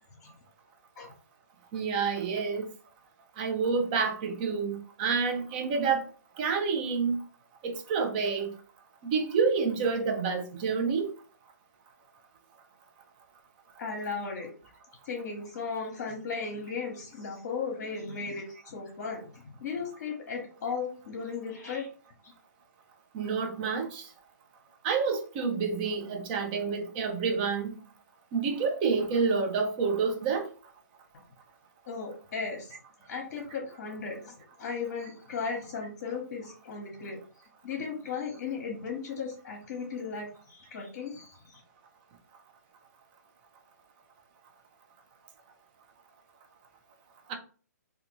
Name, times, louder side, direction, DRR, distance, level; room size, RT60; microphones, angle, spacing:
voice 1, 1.7-2.7 3.4-6.0 6.4-7.2 7.6-8.5 9.0-11.1 23.1-24.1 24.8-27.8 28.3-30.5 47.3-47.4, right 5 dB, 30° right, 0.6 m, -28 dB
voice 2, 13.8-14.5 15.0-21.9 31.9-32.8 33.1-37.2 37.6-41.6, left 5 dB, 45° left, 0.9 m, -36 dB
2.5 x 2.3 x 3.0 m
hypercardioid pair, 140°, 9 cm